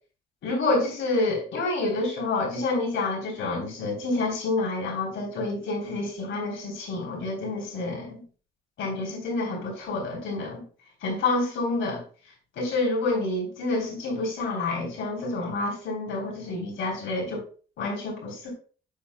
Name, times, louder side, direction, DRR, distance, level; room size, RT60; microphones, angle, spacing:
voice 1, 0.4-8.2 8.8-10.6 11.0-12.0 12.5-17.4 17.8-18.5, left 2 dB, 70° left, -1 dB, 3.5 m, -28 dB
8.1 x 7.4 x 2.2 m, 0.39 s
cardioid pair, 90°, 20 cm